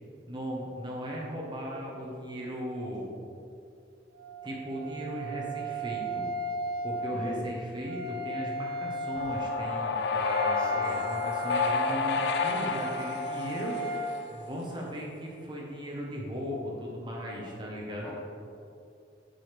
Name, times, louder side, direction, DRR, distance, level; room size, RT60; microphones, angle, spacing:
voice 1, 0.3-3.1 4.4-6.2 6.8-9.9 10.8-13.8 14.3-18.1, equal, 25° right, -3 dB, 1.0 m, -37 dB
Wind instrument woodwind instrument, 4.1-14.2, right 1 dB, 60° right, 0.6 m, -35 dB
voice 2, 7.1-7.4 10.1-11.0 18.0-18.1, equal, 5° left, -5 dB, 0.9 m, -40 dB
sound 1, 9.2-14.4, left 5 dB, 70° left, 0.4 m, -30 dB
7.7 x 4.9 x 3.3 m, 2.5 s
head